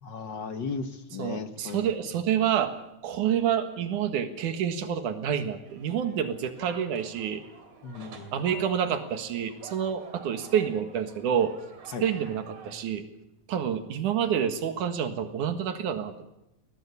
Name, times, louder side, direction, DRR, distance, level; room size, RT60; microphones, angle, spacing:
voice 1, 0.0-1.9 7.8-8.5 11.9-12.1, left 5 dB, 50° left, 8 dB, 1.6 m, -36 dB
voice 2, 1.2-2.7 3.0-7.4 8.3-11.5 12.0-13.0 13.5-16.1, right 8 dB, 90° right, 8 dB, 3.1 m, -28 dB
sound 1, 5.6-12.9, right 4 dB, 60° right, 3.6 m, -49 dB
20.5 x 19.0 x 8.4 m, 0.89 s
omnidirectional pair, 3.4 m